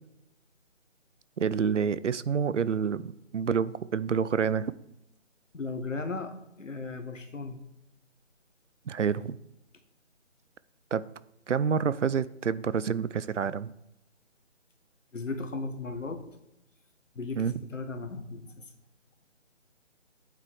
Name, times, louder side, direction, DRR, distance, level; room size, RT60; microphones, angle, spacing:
voice 1, 1.4-4.7 8.9-9.4 10.9-11.0 11.5-13.7 17.4-17.5, right 7 dB, 70° right, 17 dB, 0.6 m, -28 dB
voice 2, 5.5-7.6 15.1-16.2 17.1-18.7, left 3 dB, 75° left, 8 dB, 1.6 m, -36 dB
8.8 x 6.9 x 4.8 m, 0.88 s
figure-of-eight pair, 160°, 38 cm